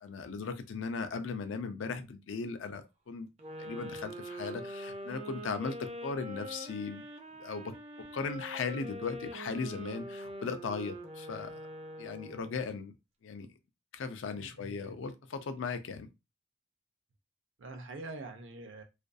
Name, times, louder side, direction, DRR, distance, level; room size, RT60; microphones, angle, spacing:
voice 1, 0.0-3.3 3.6-7.0 7.4-7.8 8.1-11.5 12.0-12.9 13.2-13.5 13.9-16.1, left 4 dB, 80° left, 0.4 m, -37 dB
sound 1, 3.4-12.6, right 1 dB, 30° right, 0.4 m, -44 dB
voice 2, 14.3-15.0 17.6-18.8, right 2 dB, 75° right, 0.6 m, -45 dB
2.5 x 2.3 x 2.4 m
head